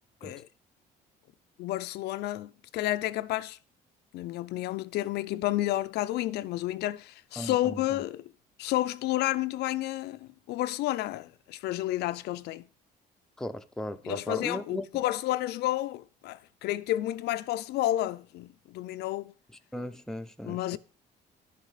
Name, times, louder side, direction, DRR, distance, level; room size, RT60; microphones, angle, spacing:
voice 1, 1.6-3.6 4.1-8.2 8.6-12.6 14.0-19.3 20.4-20.8, left 15 dB, 75° left, 0.5 m, -31 dB
voice 2, 7.4-8.0 13.4-15.0 19.7-20.8, left 1 dB, 5° left, 0.6 m, -37 dB
11.0 x 6.6 x 4.9 m
cardioid pair, 110°, 17 cm